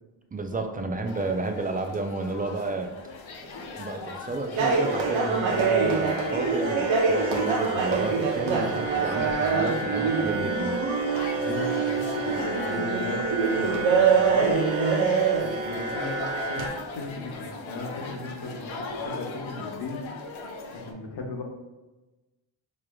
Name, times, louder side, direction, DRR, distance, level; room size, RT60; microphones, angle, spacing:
voice 1, 0.3-2.9 3.5-10.8, right 3 dB, 20° right, 5 dB, 0.4 m, -31 dB
sound 1, 1.1-20.9, left 3 dB, 80° left, 0.7 m, -39 dB
sound 2, 4.6-16.7, right 4 dB, 80° right, 0.8 m, -25 dB
voice 2, 11.3-14.6 15.3-16.6 16.9-20.0 20.7-21.4, left 3 dB, 60° left, 0 dB, 1.1 m, -37 dB
4.6 x 3.2 x 2.3 m, 1.1 s
cardioid pair, 75°, 46 cm